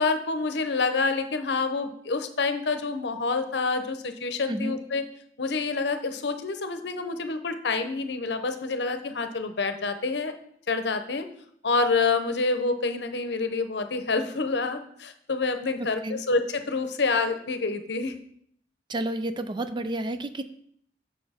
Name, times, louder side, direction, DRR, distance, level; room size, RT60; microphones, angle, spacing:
voice 1, 0.0-5.0 5.4-10.3 10.7-11.3 11.6-18.1, left 4 dB, 70° left, 8 dB, 0.8 m, -27 dB
voice 2, 4.5-4.8 15.8-16.2 18.9-20.4, right 1 dB, 25° right, 10 dB, 0.4 m, -31 dB
6.7 x 6.3 x 4.3 m, 0.67 s
head